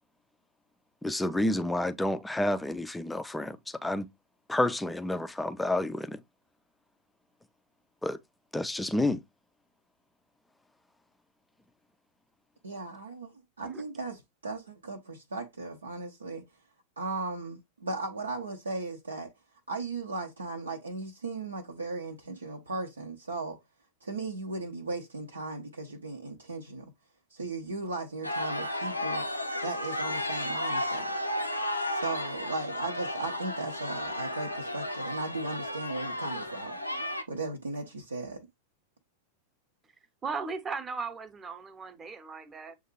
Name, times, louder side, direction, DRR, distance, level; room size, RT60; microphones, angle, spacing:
voice 1, 1.0-4.1 4.5-6.2 8.0-8.2 8.5-9.2, left 1 dB, 5° left, 0.4 m, -29 dB
voice 2, 12.6-16.4 17.0-19.3 19.7-23.6 24.0-26.9 27.3-29.3 29.6-31.1 31.9-36.8 37.3-38.5, right 3 dB, 75° right, 0.6 m, -37 dB
sound 1, 28.2-37.2, left 1 dB, 90° left, 0.5 m, -33 dB
voice 3, 40.2-42.8, right 4 dB, 20° right, 0.7 m, -37 dB
7.1 x 2.4 x 3.0 m
figure-of-eight pair, 90°, 0 cm